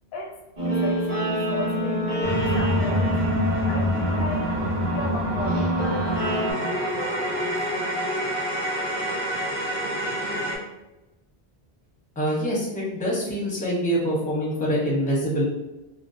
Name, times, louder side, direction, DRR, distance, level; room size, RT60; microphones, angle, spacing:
voice 1, 0.1-3.1 3.7-4.6 4.8-6.1 6.5-7.5, left 1 dB, 75° left, 0 dB, 0.8 m, -35 dB
Guitar, 0.6-6.5, equal, 40° right, 1.0 m, -26 dB
sound 1, 2.2-10.6, equal, 85° right, 0.9 m, -27 dB
voice 2, 12.2-15.4, equal, 10° left, -4 dB, 0.5 m, -25 dB
2.5 x 2.2 x 2.4 m, 1.0 s
omnidirectional pair, 1.0 m